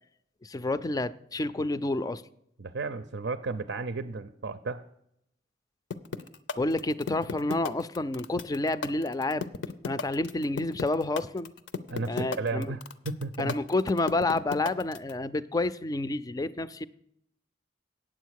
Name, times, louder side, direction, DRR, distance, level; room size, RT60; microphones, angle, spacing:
voice 1, 0.4-2.2 6.6-9.5 9.8-11.5 12.1-12.7 13.4-16.9, left 2 dB, 20° left, 15 dB, 0.4 m, -29 dB
voice 2, 2.6-4.8 11.9-12.8 13.1-13.5, right 3 dB, 80° right, 11 dB, 0.6 m, -33 dB
sound 1, 5.9-15.1, left 5 dB, 85° left, 0.6 m, -34 dB
9.2 x 7.5 x 6.4 m, 0.75 s
head